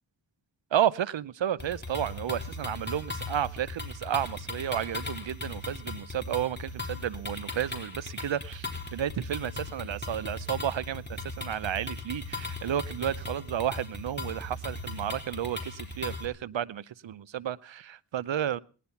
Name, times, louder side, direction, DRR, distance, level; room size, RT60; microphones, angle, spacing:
voice 1, 0.7-18.6, right 10 dB, 85° right, 0.7 m, -32 dB
sound 1, 1.6-16.3, left 2 dB, 25° left, 3.7 m, -38 dB
19.0 x 11.0 x 5.7 m
wide cardioid pair, 55°, 44 cm